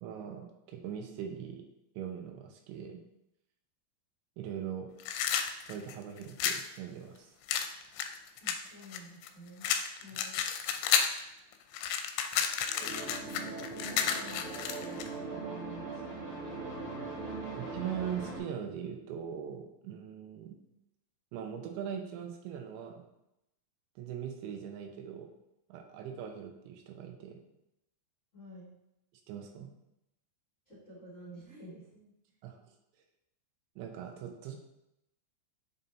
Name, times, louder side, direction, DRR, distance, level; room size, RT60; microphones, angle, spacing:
voice 1, 0.0-1.7 2.0-3.0 4.4-4.9 5.7-7.3 17.6-20.6 21.3-23.0 24.0-25.3 25.7-27.4 29.3-29.7 32.4-32.6 33.8-34.6, right 8 dB, 90° right, 4 dB, 3.1 m, -41 dB
sound 1, 5.0-6.7 7.5-9.3 9.6-11.2 11.5-15.1, left 8 dB, 80° left, 2.6 m, -31 dB
voice 2, 8.4-9.7 10.0-10.4 12.8-16.2 28.3-28.7 30.7-32.1, equal, 30° left, -9 dB, 1.5 m, -50 dB
sound 2, 12.6-18.4, right 3 dB, 70° right, 0.4 m, -40 dB
7.1 x 5.3 x 2.7 m, 0.84 s
omnidirectional pair, 5.1 m